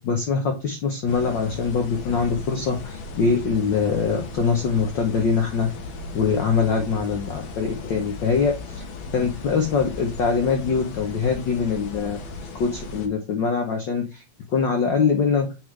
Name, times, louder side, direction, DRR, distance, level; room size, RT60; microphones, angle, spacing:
voice 1, 0.0-5.7 6.1-8.8 9.1-12.2 12.6-14.2 14.5-15.5, left 5 dB, 85° left, 3 dB, 1.0 m, -23 dB
sound 1, 1.1-13.1, left 3 dB, 55° left, 1.5 m, -36 dB
7.7 x 4.8 x 3.2 m, 0.28 s
omnidirectional pair, 3.3 m